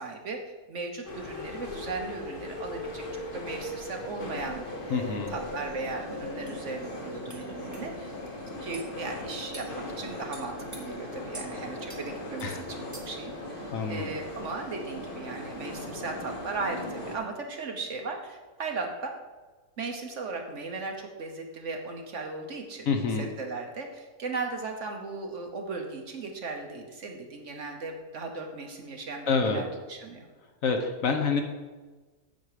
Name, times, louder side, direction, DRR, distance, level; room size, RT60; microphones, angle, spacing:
voice 1, 0.0-8.1 8.6-12.6 12.9-19.1 19.8-22.9 23.2-30.3, right 3 dB, 55° right, 3 dB, 1.1 m, -37 dB
sound 1, 1.0-17.2, left 1 dB, 35° left, 1.3 m, -38 dB
voice 2, 4.9-5.3 12.4-12.6 13.7-14.1 22.9-23.3 29.3-29.6 30.6-31.4, left 5 dB, 60° left, 5 dB, 1.2 m, -27 dB
sound 2, 5.8-5.9 6.5-6.6 7.3-7.4 7.7-7.9 8.7-8.9 9.5-9.7 10.3-10.8 11.3-11.5 11.9-12.0 12.4-12.5 12.9-13.2, right 2 dB, 15° right, 1.0 m, -45 dB
8.0 x 7.3 x 4.9 m, 1.3 s
omnidirectional pair, 1.7 m